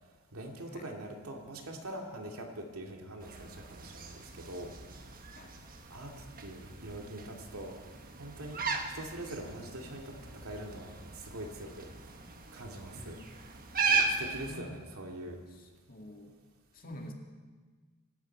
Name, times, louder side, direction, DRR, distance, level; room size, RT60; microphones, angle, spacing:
voice 1, 0.3-4.7 5.9-7.8 8.2-8.6 8.9-11.9 12.5-13.2 13.9-15.4, right 1 dB, 80° right, 1 dB, 2.4 m, -43 dB
sound 1, 3.2-14.5, right 4 dB, 45° right, 1.3 m, -37 dB
voice 2, 12.9-13.3 14.5-14.6 15.9-16.4 16.7-17.1, left 1 dB, 45° left, 2 dB, 2.1 m, -47 dB
25.5 x 12.5 x 4.6 m, 1.4 s
head